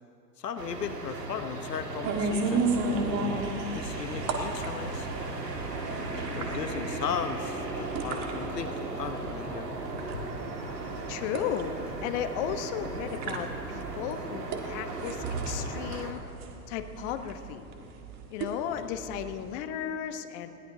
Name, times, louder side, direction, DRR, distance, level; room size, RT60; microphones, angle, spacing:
voice 1, 0.4-3.4 3.7-5.1 6.1-9.7 10.1-10.4, left 7 dB, 85° left, 9 dB, 0.9 m, -37 dB
sound 1, 0.6-16.1, right 2 dB, 85° right, 2.0 m, -36 dB
sound 2, 2.0-19.6, right 3 dB, 35° right, 1.6 m, -35 dB
voice 2, 11.1-16.2 16.7-17.6 18.3-20.5, left 9 dB, 45° left, 9 dB, 1.0 m, -35 dB
20.5 x 17.0 x 2.7 m, 2.9 s
hypercardioid pair, 100°, 47 cm